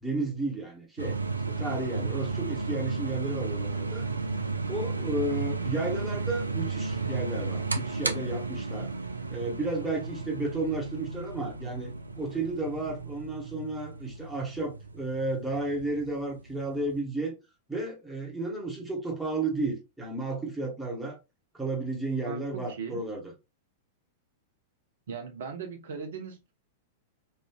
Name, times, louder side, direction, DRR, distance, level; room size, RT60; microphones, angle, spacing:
voice 1, 0.0-1.2 1.5-4.1 4.7-8.9 9.3-17.3 17.7-21.2 21.5-23.2, right 2 dB, 5° right, 1.3 m, -33 dB
sound 1, 1.0-17.0, right 3 dB, 80° right, 0.3 m, -33 dB
voice 2, 22.2-23.0 25.1-26.5, right 6 dB, 60° right, 0.8 m, -39 dB
3.2 x 2.5 x 2.3 m
figure-of-eight pair, 95°, 0 cm